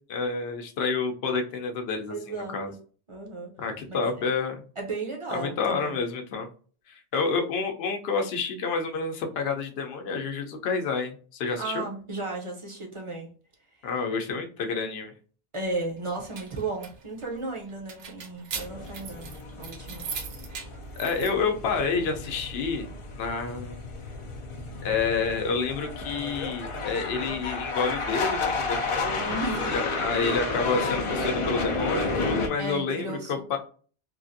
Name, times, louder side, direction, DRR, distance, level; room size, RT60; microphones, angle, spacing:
voice 1, 0.1-2.7 3.6-4.6 5.3-6.5 6.9-11.8 13.8-15.1 21.0-22.9 23.2-23.9 24.8-29.4 29.6-33.6, left 4 dB, 65° left, 4 dB, 0.8 m, -29 dB
voice 2, 2.1-2.8 3.1-3.5 3.9-4.0 4.8-6.0 11.6-13.3 15.5-19.3 19.6-20.1 29.2-29.7 32.6-33.6, right 3 dB, 35° right, 0 dB, 0.6 m, -34 dB
sound 1, 16.0-21.3, right 6 dB, 80° right, 1.0 m, -40 dB
sound 2, 18.5-32.5, left 3 dB, 50° left, 0.4 m, -32 dB
3.1 x 2.5 x 2.5 m, 0.40 s
omnidirectional pair, 1.2 m